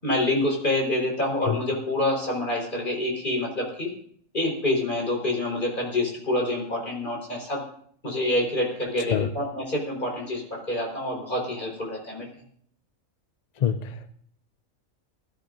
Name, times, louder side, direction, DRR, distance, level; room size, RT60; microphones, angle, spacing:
voice 1, 0.0-3.9 4.3-7.6 8.0-12.3, left 1 dB, 35° left, -1 dB, 4.6 m, -27 dB
voice 2, 9.0-9.3 13.6-14.1, left 9 dB, 55° left, 10 dB, 0.4 m, -26 dB
20.0 x 13.5 x 2.6 m, 0.63 s
omnidirectional pair, 1.4 m